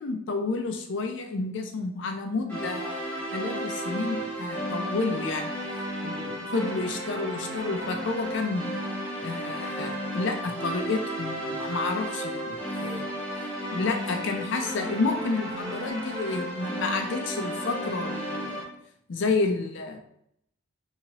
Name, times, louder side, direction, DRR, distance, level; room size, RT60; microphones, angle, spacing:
voice 1, 0.0-5.6 6.0-8.7 9.2-13.1 13.7-18.6 19.1-20.0, left 3 dB, 65° left, 5 dB, 0.5 m, -30 dB
sound 1, 2.5-18.6, equal, 10° left, 0.8 m, -33 dB
3.0 x 2.8 x 2.8 m, 0.73 s
head